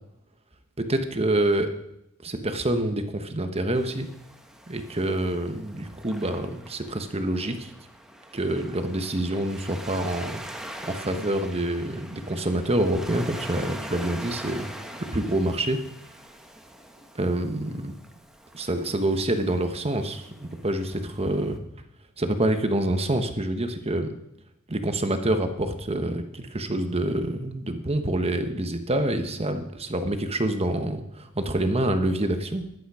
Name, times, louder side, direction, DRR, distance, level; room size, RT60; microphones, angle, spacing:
voice 1, 0.8-1.7 2.2-4.1 4.7-7.7 8.3-10.4 10.8-14.7 15.0-15.8 17.1-18.0 18.5-21.6 22.2-24.1 24.7-32.6, right 1 dB, 30° right, 7 dB, 1.2 m, -27 dB
Waves surf, 3.7-21.6, right 1 dB, 5° right, 1.2 m, -43 dB
14.5 x 11.5 x 4.9 m, 0.83 s
head